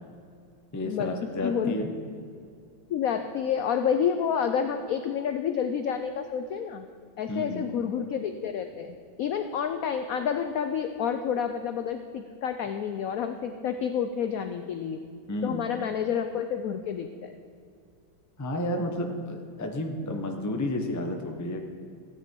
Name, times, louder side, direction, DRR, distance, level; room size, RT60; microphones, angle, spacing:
voice 1, 0.7-1.9 7.3-7.6 15.3-15.6 18.4-21.6, left 1 dB, 20° left, 3 dB, 0.4 m, -31 dB
voice 2, 1.4-1.8 2.9-6.9 7.2-15.0 15.4-17.3, left 7 dB, 80° left, 7 dB, 0.7 m, -29 dB
15.5 x 9.2 x 4.5 m, 2.4 s
omnidirectional pair, 2.1 m